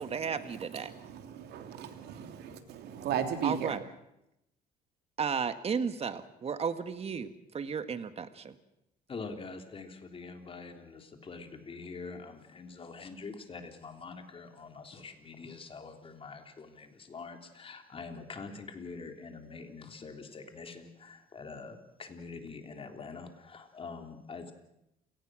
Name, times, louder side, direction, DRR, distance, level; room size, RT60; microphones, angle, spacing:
voice 1, 0.0-0.9 3.4-3.8 5.2-8.6, right 6 dB, 35° right, 11 dB, 1.7 m, -34 dB
voice 2, 0.6-3.8, right 8 dB, 75° right, 6 dB, 3.0 m, -36 dB
voice 3, 9.1-24.5, left 4 dB, 35° left, 5 dB, 3.5 m, -45 dB
29.0 x 19.0 x 6.4 m, 0.84 s
cardioid pair, 110°, 17 cm